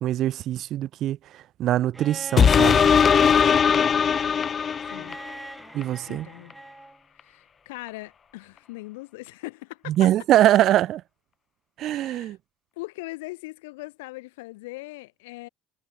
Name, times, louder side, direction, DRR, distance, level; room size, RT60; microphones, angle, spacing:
voice 1, 0.0-1.2 1.6-2.9 5.7-6.3 9.9-11.0 11.8-12.4, right 13 dB, 60° right, 0.5 m, -22 dB
Bowed string instrument, 1.9-7.0 8.4-8.5, right 1 dB, 10° right, 6.1 m, -41 dB
sound 1, 2.4-5.3 5.8-5.9, left 7 dB, 40° left, 0.4 m, -19 dB
voice 2, 3.4-3.8 4.9-5.2 6.0-6.5 7.2-10.1 11.8-12.4 12.8-15.5, left 22 dB, 80° left, 3.2 m, -40 dB
hypercardioid pair, 70°, 0 cm